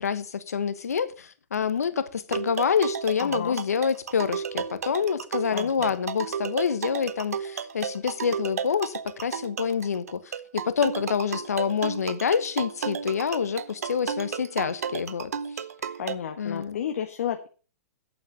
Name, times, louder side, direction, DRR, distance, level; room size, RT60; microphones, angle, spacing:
voice 1, 0.0-15.3 16.4-16.8, left 7 dB, 85° left, 1.3 m, -27 dB
sound 1, 2.3-16.2, right 7 dB, 80° right, 0.9 m, -33 dB
voice 2, 3.2-3.6 5.5-5.9 16.0-17.5, left 9 dB, 70° left, 1.5 m, -32 dB
8.7 x 8.0 x 6.5 m
hypercardioid pair, 120°, 8 cm